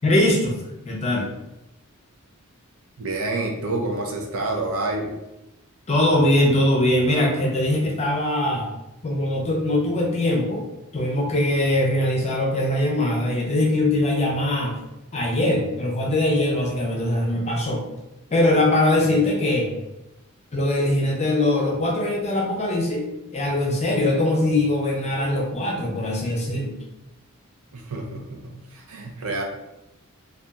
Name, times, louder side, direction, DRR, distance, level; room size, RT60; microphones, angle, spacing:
voice 1, 0.0-0.6 0.9-1.2 5.9-8.7 9.0-10.6 10.9-14.8 15.1-17.8 18.3-19.7 20.5-23.1 23.3-26.8, left 1 dB, 30° left, -1 dB, 0.5 m, -21 dB
voice 2, 3.0-5.1 27.7-29.4, right 2 dB, 70° right, 1 dB, 0.5 m, -28 dB
2.8 x 2.3 x 2.3 m, 0.94 s
head